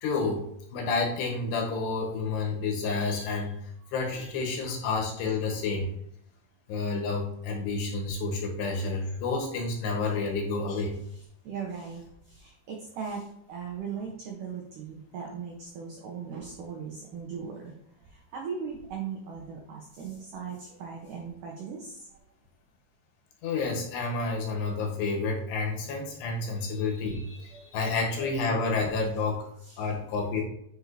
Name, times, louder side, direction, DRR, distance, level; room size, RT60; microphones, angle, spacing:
voice 1, 0.0-0.4 0.7-3.5 3.9-5.9 6.7-11.0 23.4-29.4 29.8-30.4, left 3 dB, 70° left, 1 dB, 3.3 m, -29 dB
voice 2, 11.0-17.8 18.0-22.2 27.4-27.7 29.6-29.9, right 6 dB, 80° right, 0 dB, 1.9 m, -39 dB
10.0 x 5.7 x 2.8 m, 0.74 s
omnidirectional pair, 5.4 m